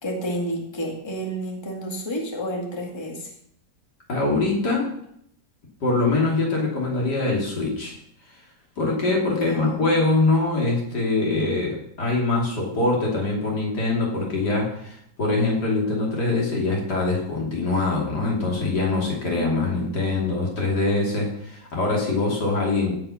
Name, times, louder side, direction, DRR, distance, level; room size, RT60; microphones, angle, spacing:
voice 1, 0.0-3.3 9.3-9.9 19.3-19.9, equal, 15° left, 0 dB, 2.1 m, -30 dB
voice 2, 4.1-4.9 5.8-7.9 8.8-22.9, left 3 dB, 75° left, -2 dB, 3.5 m, -23 dB
16.0 x 5.8 x 5.8 m, 0.72 s
omnidirectional pair, 1.8 m